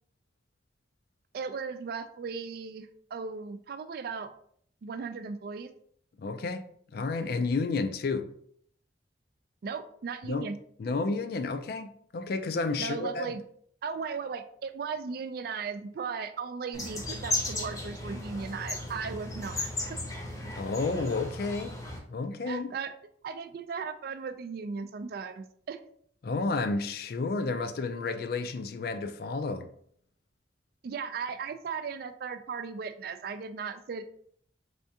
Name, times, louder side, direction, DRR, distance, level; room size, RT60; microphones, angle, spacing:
voice 1, 1.3-4.3 4.8-5.7 9.6-10.6 12.8-13.4 13.8-20.0 22.5-22.9 23.2-25.8 30.8-34.0, right 5 dB, 55° right, 0.3 m, -37 dB
voice 2, 6.2-6.6 6.9-8.3 10.2-10.5 10.8-13.3 20.6-21.8 22.1-22.7 26.2-29.7, left 3 dB, 55° left, 0.3 m, -31 dB
sound 1, 16.7-22.0, left 2 dB, 20° left, 0.7 m, -35 dB
3.5 x 3.4 x 2.7 m
head